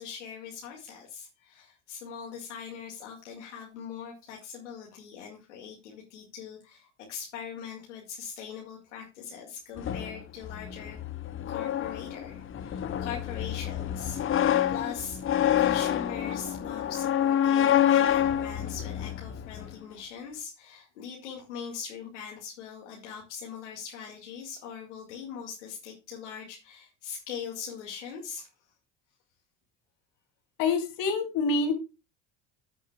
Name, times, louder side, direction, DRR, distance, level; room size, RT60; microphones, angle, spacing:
voice 1, 0.0-11.0 11.5-14.2 14.7-15.2 15.6-28.5, left 7 dB, 85° left, -1 dB, 2.1 m, -41 dB
sound 1, 9.8-19.7, left 10 dB, 35° left, 0.9 m, -27 dB
voice 2, 30.6-31.7, left 4 dB, 65° left, 4 dB, 2.8 m, -26 dB
15.0 x 6.4 x 2.3 m, 0.28 s
hypercardioid pair, 75°, 35 cm